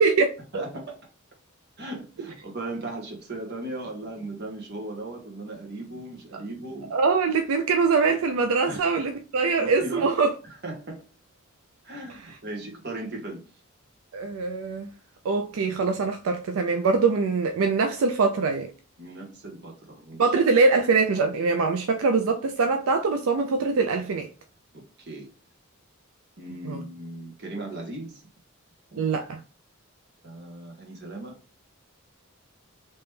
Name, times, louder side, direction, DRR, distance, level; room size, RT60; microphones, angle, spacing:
voice 1, 0.0-0.6 6.3-6.4 6.9-10.3 14.1-14.9 15.2-18.7 20.2-24.3 26.6-26.8 29.0-29.4, right 4 dB, 85° right, 0.4 m, -23 dB
voice 2, 0.5-1.0 1.8-6.9 8.7-8.9 9.6-10.1 10.6-11.0 11.8-13.4 19.0-20.3 25.0-25.3 26.4-28.2 28.9-29.0 30.2-31.4, right 2 dB, 55° right, 1.2 m, -37 dB
3.3 x 2.9 x 3.2 m
head